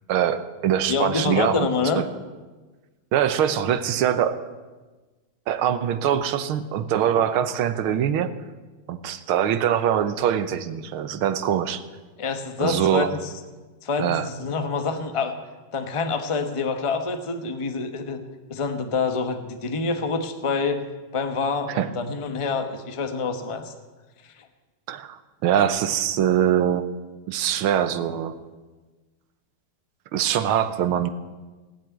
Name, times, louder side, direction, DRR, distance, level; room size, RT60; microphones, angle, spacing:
voice 1, 0.1-1.7 2.0-2.1 3.1-4.4 5.5-8.3 8.9-11.8 12.6-13.1 14.0-14.3 21.8-21.9 24.9-26.9 27.3-28.4 30.1-31.1, right 9 dB, 85° right, 13 dB, 1.7 m, -23 dB
voice 2, 0.9-2.0 12.2-13.1 13.8-15.3 15.7-18.2 18.5-20.9 21.1-23.7 24.2-24.5, left 4 dB, 25° left, 7 dB, 0.8 m, -26 dB
18.0 x 7.5 x 9.2 m, 1.3 s
omnidirectional pair, 2.3 m